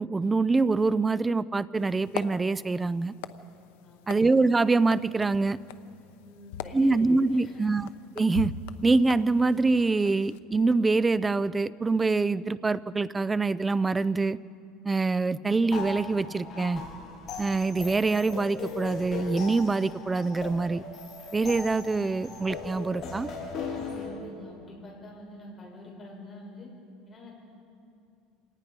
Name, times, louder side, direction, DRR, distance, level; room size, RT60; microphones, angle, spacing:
voice 1, 0.0-3.1 4.1-5.6 6.7-7.9 8.2-8.5 8.8-14.4 14.8-16.8 17.4-20.8 21.3-23.3, right 3 dB, 10° right, 18 dB, 0.4 m, -25 dB
sound 1, 1.8-10.4, left 9 dB, 85° left, 0.8 m, -42 dB
voice 2, 3.8-4.2 6.2-7.7 23.7-26.7 27.0-27.3, left 2 dB, 20° left, -4 dB, 6.7 m, -46 dB
sound 2, 15.7-24.1, left 4 dB, 35° left, 6.2 m, -38 dB
27.0 x 18.5 x 5.3 m, 2.5 s
cardioid pair, 155°, 0 cm